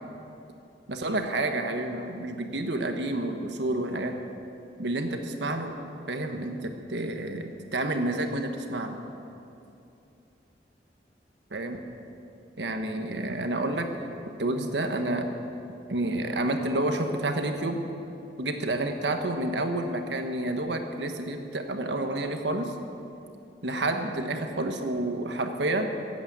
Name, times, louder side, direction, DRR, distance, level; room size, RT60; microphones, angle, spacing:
voice 1, 0.9-4.2 4.8-5.8 6.1-9.0 11.5-11.8 12.6-13.9 14.4-15.3 15.9-17.8 18.4-22.7 23.6-25.9, right 2 dB, 85° right, 5 dB, 1.3 m, -29 dB
15.0 x 8.6 x 8.5 m, 2.8 s
head